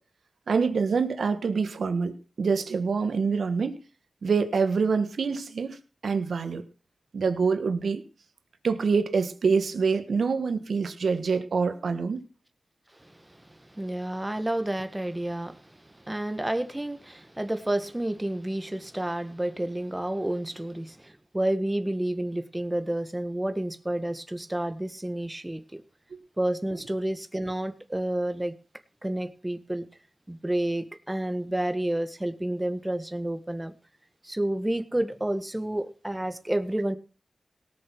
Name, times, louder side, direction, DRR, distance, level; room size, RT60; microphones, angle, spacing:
voice 1, 0.5-3.8 4.2-5.8 6.0-6.6 7.1-8.0 8.6-12.2 26.1-26.2, right 5 dB, 85° right, 1.4 m, -26 dB
voice 2, 13.0-25.8 26.4-28.5 29.0-29.8 30.3-33.7 34.2-37.0, right 1 dB, 15° right, 1.6 m, -30 dB
18.0 x 6.6 x 6.1 m
cardioid pair, 50°, 0 cm